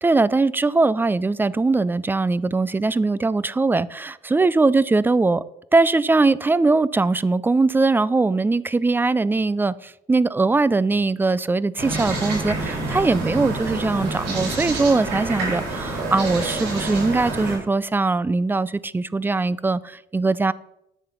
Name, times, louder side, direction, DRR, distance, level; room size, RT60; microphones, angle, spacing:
voice 1, 0.0-5.4 5.7-20.5, right 3 dB, 10° right, 0.4 m, -21 dB
sound 1, 11.8-17.6, right 2 dB, 85° right, 4.3 m, -27 dB
9.4 x 6.7 x 5.6 m
cardioid pair, 110°, 17 cm